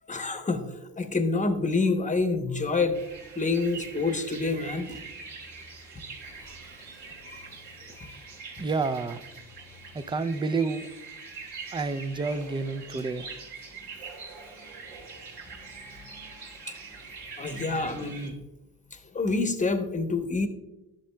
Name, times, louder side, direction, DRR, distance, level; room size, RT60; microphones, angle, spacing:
voice 1, 0.1-3.0 3.4-5.0 17.4-18.3 19.1-20.5, left 3 dB, 20° left, 8 dB, 0.9 m, -27 dB
sound 1, 2.9-18.3, right 4 dB, 85° right, 2.9 m, -44 dB
voice 2, 8.6-9.2 9.9-10.9 11.7-13.5, right 4 dB, 15° right, 12 dB, 0.4 m, -29 dB
11.5 x 6.6 x 2.2 m, 0.98 s
supercardioid pair, 75°, 40 cm